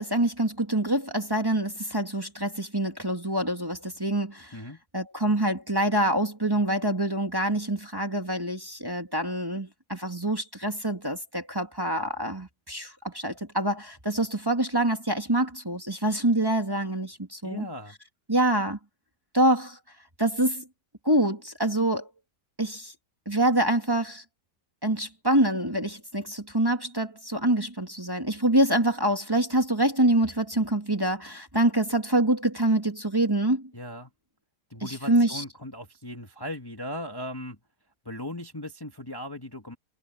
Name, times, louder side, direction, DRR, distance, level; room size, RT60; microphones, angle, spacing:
voice 1, 0.0-4.6 4.9-17.7 18.3-18.8 19.3-19.8 20.2-20.6 21.0-22.1 22.6-22.9 23.3-24.2 24.8-33.7 34.8-35.4, right 1 dB, 15° right, 2.1 m, -26 dB
voice 2, 17.4-18.0 33.7-34.1 34.7-37.6 38.1-39.8, left 1 dB, 15° left, 1.7 m, -38 dB
omnidirectional pair, 1.8 m